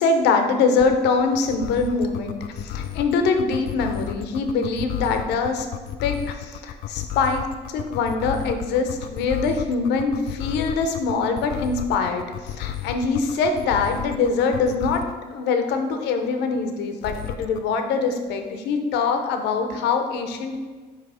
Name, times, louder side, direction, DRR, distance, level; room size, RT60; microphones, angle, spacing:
voice 1, 0.0-5.7 6.0-20.6, left 4 dB, 85° left, 6 dB, 0.8 m, -23 dB
sound 1, 0.8-15.2 17.0-17.6, left 11 dB, 65° left, 0.4 m, -32 dB
7.6 x 3.1 x 4.8 m, 1.4 s
cardioid pair, 110°, 17 cm